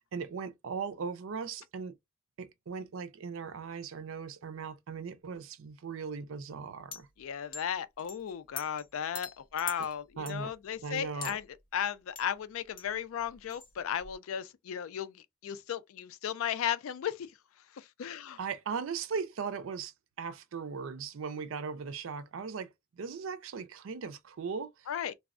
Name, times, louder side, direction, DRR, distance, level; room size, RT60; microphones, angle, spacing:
voice 1, 0.1-1.9 2.4-7.1 10.2-10.5 10.8-11.4 18.4-25.1, right 5 dB, 80° right, 0.4 m, -38 dB
sound 1, 6.9-7.0 7.5-7.6 8.0-8.9 9.2-11.4 11.9-12.0 12.2-12.3 12.8-12.9 13.2-14.1, left 6 dB, 40° left, 0.6 m, -43 dB
voice 2, 7.2-11.5 11.7-17.3 17.8-18.4 24.9-25.1, left 9 dB, 85° left, 0.4 m, -35 dB
3.4 x 2.0 x 2.4 m
head